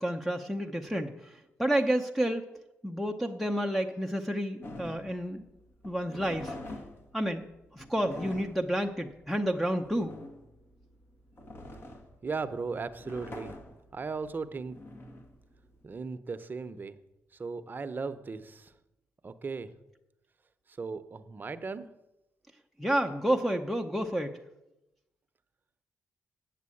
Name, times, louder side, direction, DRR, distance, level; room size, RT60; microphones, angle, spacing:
voice 1, 0.0-2.4 2.8-5.4 5.8-6.6 7.1-7.4 7.7-10.1 22.8-24.4, right 1 dB, ahead, 1 dB, 0.8 m, -30 dB
sound 1, 4.6-16.0, left 1 dB, 45° left, 1.7 m, -45 dB
voice 2, 12.2-13.6 13.9-14.8 15.8-17.0 17.4-18.7 19.2-19.7 20.8-21.9, right 4 dB, 35° right, 11 dB, 0.8 m, -37 dB
8.5 x 7.4 x 8.5 m, 0.93 s
cardioid pair, 80°, 5 cm